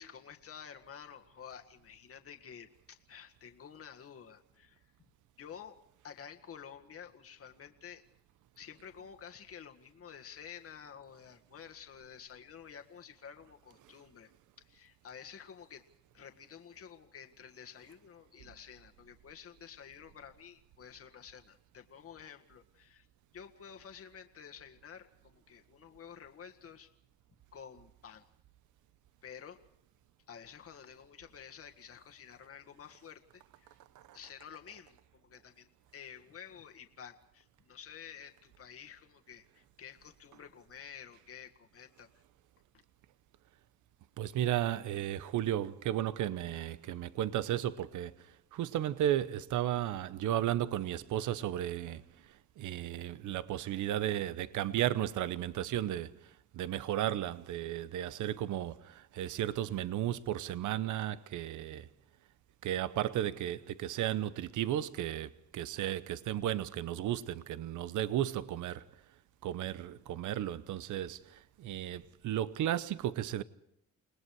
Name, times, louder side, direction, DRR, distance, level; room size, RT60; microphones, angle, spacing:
voice 1, 0.0-4.8 5.4-5.8 6.0-8.0 8.6-14.3 14.6-15.8 16.1-23.1 23.3-26.9 27.5-28.2 29.2-29.6 30.3-33.8 34.1-42.1, left 8 dB, 50° left, 1.8 m, -51 dB
voice 2, 44.2-61.9 62.6-68.9 69.4-73.4, right 12 dB, 80° right, 0.9 m, -34 dB
29.5 x 19.5 x 4.8 m
cardioid pair, 90°, 30 cm